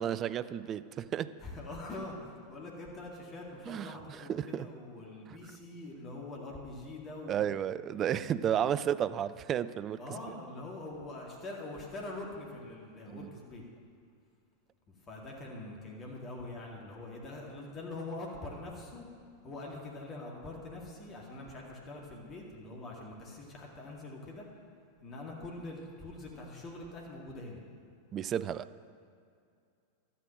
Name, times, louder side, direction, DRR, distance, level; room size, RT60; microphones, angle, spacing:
voice 1, 0.0-1.3 3.7-3.9 4.3-4.7 7.3-10.0 13.1-13.2 28.1-28.7, right 9 dB, 30° right, 15 dB, 0.4 m, -32 dB
voice 2, 1.4-7.6 8.5-8.7 10.0-13.6 14.9-19.1 19.4-24.5 25.0-27.6, left 2 dB, 25° left, -2 dB, 2.2 m, -44 dB
12.5 x 8.7 x 6.4 m, 2.3 s
figure-of-eight pair, 90°, 0 cm